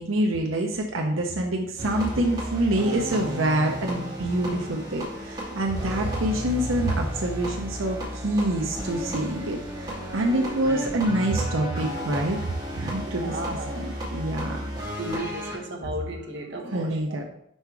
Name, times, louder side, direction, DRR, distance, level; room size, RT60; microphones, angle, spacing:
voice 1, 0.0-12.4 12.7-14.7 15.5-15.6 16.7-17.2, right 1 dB, 85° right, 2 dB, 0.7 m, -26 dB
sound 1, 1.8-15.6, equal, 20° right, 2.4 m, -33 dB
voice 2, 13.1-13.8 15.0-17.2, right 1 dB, 60° right, 2 dB, 1.0 m, -34 dB
5.6 x 4.5 x 4.6 m, 0.75 s
head